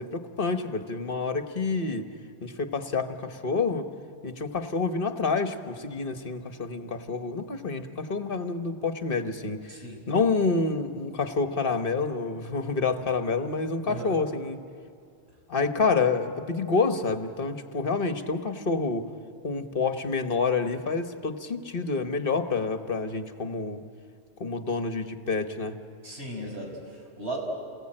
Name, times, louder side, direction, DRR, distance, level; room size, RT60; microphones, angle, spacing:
voice 1, 0.0-2.1 2.4-3.8 4.2-9.8 10.1-14.6 15.5-19.1 19.4-23.8 24.4-25.8, left 4 dB, 50° left, 8 dB, 1.5 m, -28 dB
voice 2, 9.7-10.0 13.9-14.1 26.0-27.4, right 1 dB, 65° right, 0 dB, 5.6 m, -36 dB
28.5 x 20.0 x 8.8 m, 2.3 s
omnidirectional pair, 1.2 m